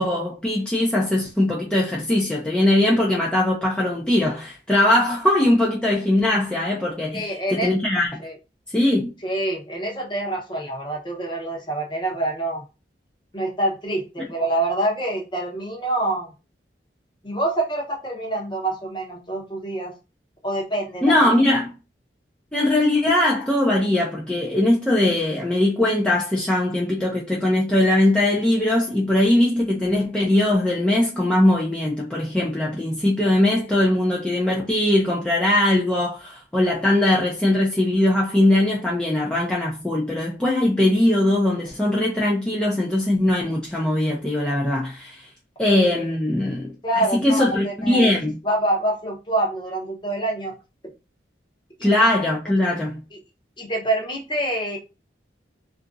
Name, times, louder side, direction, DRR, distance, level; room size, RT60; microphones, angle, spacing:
voice 1, 0.0-8.1 8.7-9.1 21.0-21.7 22.5-45.3 45.6-48.4 51.8-53.0, left 1 dB, 5° left, 0.5 m, -20 dB
voice 2, 7.1-7.7 8.2-8.3 9.2-12.6 13.3-16.3 17.2-19.9 20.4-21.4 46.8-48.1 48.4-50.5 51.8-52.0 53.1-53.2 53.6-54.8, right 1 dB, 25° left, 0.8 m, -26 dB
2.8 x 2.5 x 2.4 m
head